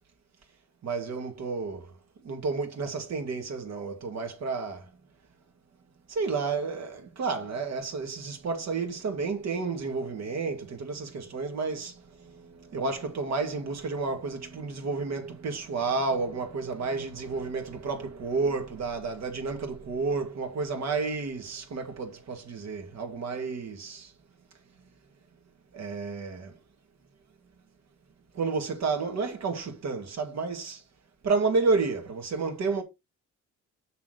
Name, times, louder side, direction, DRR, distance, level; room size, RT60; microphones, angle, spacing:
voice 1, 0.8-2.0 2.2-4.9 6.1-24.1 25.7-26.6 28.3-30.8 31.2-32.8, right 4 dB, 60° right, 2.3 m, -31 dB
6.8 x 6.5 x 3.9 m
cardioid pair, 90°, 30 cm